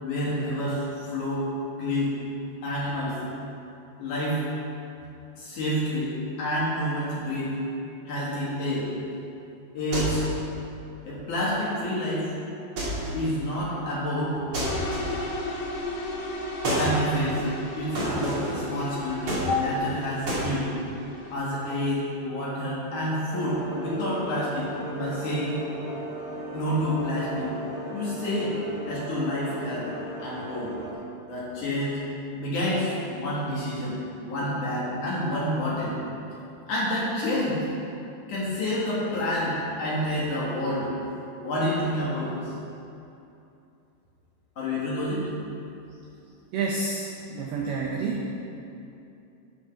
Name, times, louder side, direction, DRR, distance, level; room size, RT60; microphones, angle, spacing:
voice 1, 0.0-1.5 1.8-2.2 2.6-3.2 4.0-4.4 5.4-6.1 6.4-7.5 8.1-8.9 9.7-10.2 11.0-12.3 13.1-14.4 16.7-17.5 17.7-20.7 21.3-25.6 26.5-27.5 27.9-28.6 28.8-29.9 30.2-30.7 31.3-32.0 32.3-36.0 36.7-37.6 38.3-40.9 41.4-42.5 44.6-45.3, left 1 dB, 55° left, -7 dB, 2.5 m, -28 dB
sound 1, 9.9-10.4 12.8-13.2 14.5-15.3 16.6-17.0 17.9-18.6 19.3-19.9 20.3-20.5, right 1 dB, 40° right, 2.0 m, -29 dB
sound 2, 14.6-21.3, left 2 dB, 85° left, 4.4 m, -35 dB
sound 3, 23.3-30.9, right 1 dB, 30° left, 2.7 m, -37 dB
voice 2, 46.5-48.3, right 4 dB, 80° right, -2 dB, 2.2 m, -29 dB
12.0 x 6.4 x 5.9 m, 2.8 s
omnidirectional pair, 5.6 m